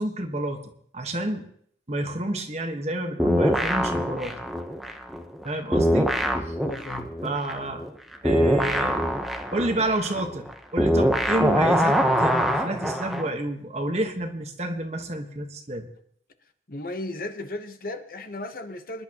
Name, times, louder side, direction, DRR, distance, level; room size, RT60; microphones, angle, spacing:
voice 1, 0.0-1.4 1.9-4.4 5.4-6.1 6.4-6.6 7.2-7.8 8.2-9.0 9.5-15.9, right 1 dB, 40° right, 1.3 m, -29 dB
sound 1, 3.2-5.4 5.7-13.3, equal, ahead, 0.9 m, -24 dB
voice 2, 6.6-7.1 16.7-19.0, left 2 dB, 55° left, 1.0 m, -35 dB
25.5 x 11.0 x 3.0 m
head